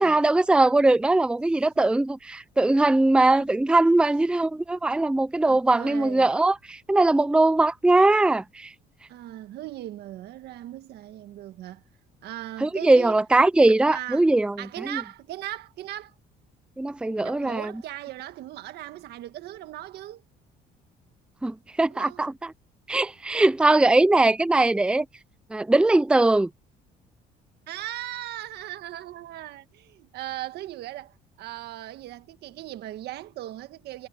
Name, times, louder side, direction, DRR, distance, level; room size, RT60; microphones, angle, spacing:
voice 1, 0.0-8.7 12.6-15.0 16.8-17.7 21.4-22.5 22.9-25.1 25.5-26.5, right 2 dB, 5° right, 0.6 m, -21 dB
voice 2, 5.5-6.3 9.1-11.8 12.2-13.1 13.9-14.3 14.6-16.1 17.2-20.2 21.9-22.2 27.7-34.1, right 14 dB, 75° right, 1.7 m, -38 dB
cardioid pair, 110°, 17 cm